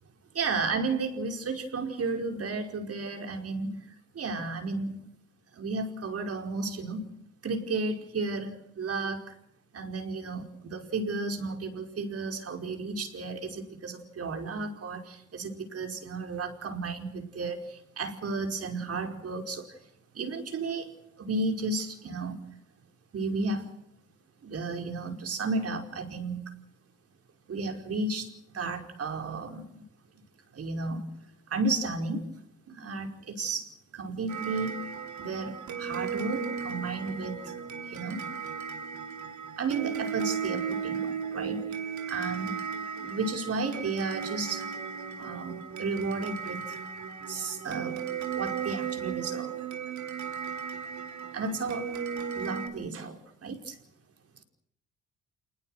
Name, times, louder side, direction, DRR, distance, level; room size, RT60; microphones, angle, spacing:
voice 1, 0.3-3.8 4.2-5.0 5.5-7.0 7.4-9.4 9.7-19.7 20.2-20.9 21.2-22.4 23.1-23.7 24.4-26.5 27.5-28.3 28.5-29.8 30.5-31.1 31.5-32.2 32.7-34.8 35.2-37.5 37.9-38.2 39.6-41.6 42.1-44.7 45.2-46.8 47.3-48.0 48.3-49.6 51.3-51.9 52.4-53.8, right 3 dB, 50° right, 5 dB, 5.1 m, -33 dB
sound 1, 34.3-52.7, right 7 dB, 70° right, 3.9 m, -36 dB
28.0 x 20.5 x 6.5 m, 0.78 s
cardioid pair, 90°, 30 cm